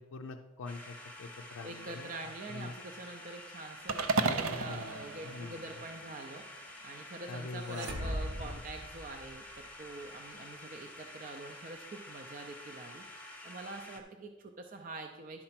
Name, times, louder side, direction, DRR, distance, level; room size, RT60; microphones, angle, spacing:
voice 1, 0.0-2.8 4.1-5.7 7.3-8.6, left 3 dB, 75° left, 2 dB, 0.5 m, -44 dB
sound 1, 0.7-14.0, left 1 dB, 5° left, 0.7 m, -49 dB
voice 2, 1.6-15.4, right 3 dB, 40° right, 3 dB, 0.5 m, -46 dB
sound 2, 3.9-6.2, right 4 dB, 85° right, 0.6 m, -34 dB
sound 3, 7.6-9.6, equal, 60° right, 0.9 m, -39 dB
10.5 x 4.4 x 5.8 m, 1.2 s
head